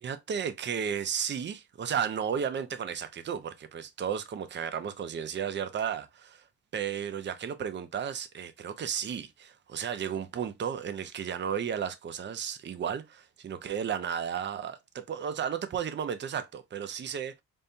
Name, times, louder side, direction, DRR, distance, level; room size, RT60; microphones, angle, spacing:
voice 1, 0.0-6.4 6.7-17.3, right 8 dB, 35° right, 0.6 m, -33 dB
5.3 x 2.2 x 2.6 m
cardioid pair, 90°, 30 cm